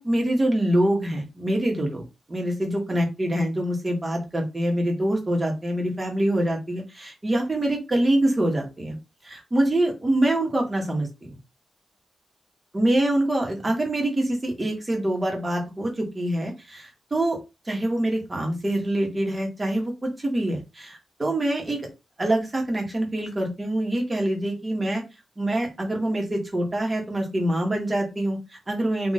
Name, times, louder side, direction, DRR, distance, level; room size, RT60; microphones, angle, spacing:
voice 1, 0.0-2.0 2.3-9.0 9.2-11.4 12.7-17.4 17.6-21.8 22.2-25.0 25.4-29.1, right 1 dB, 20° right, 1 dB, 1.4 m, -25 dB
4.2 x 2.8 x 3.7 m, 0.25 s
wide cardioid pair, 165°, 0 cm